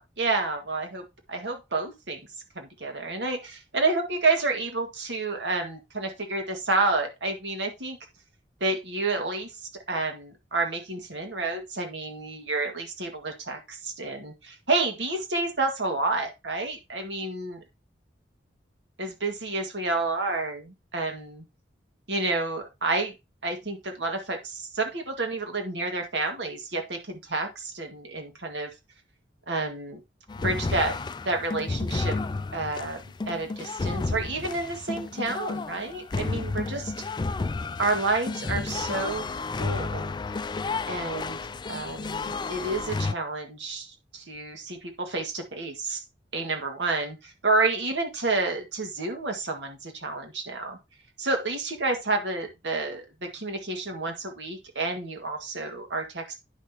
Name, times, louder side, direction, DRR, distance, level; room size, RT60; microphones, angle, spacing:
voice 1, 0.2-1.0 1.3-2.2 2.6-8.0 8.6-9.6 9.9-17.6 19.0-21.4 22.1-23.1 23.4-28.7 29.5-30.0 30.4-31.0 31.2-32.2 32.5-33.0 33.3-36.9 37.8-39.3 39.6-40.1 40.9-46.0 46.3-50.8 51.2-56.4, right 3 dB, 80° right, 4 dB, 1.9 m, -29 dB
sound 1, 30.3-43.1, left 3 dB, 25° left, 0.3 m, -32 dB
10.0 x 6.4 x 2.9 m, 0.23 s
head